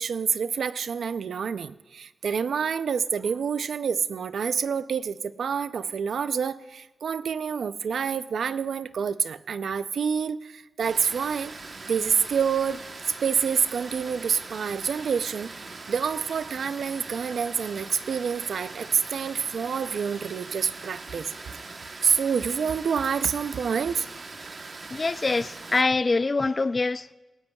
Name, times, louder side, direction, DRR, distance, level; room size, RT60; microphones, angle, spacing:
voice 1, 0.0-11.5 11.9-12.8 13.2-15.5 15.9-21.3 22.0-24.1, right 6 dB, 85° right, 0.5 m, -27 dB
Water, 10.8-25.8, right 3 dB, 45° right, 1.1 m, -41 dB
voice 2, 24.9-27.1, left 3 dB, 30° left, 0.3 m, -24 dB
19.5 x 18.0 x 2.3 m
wide cardioid pair, 140°, 0 cm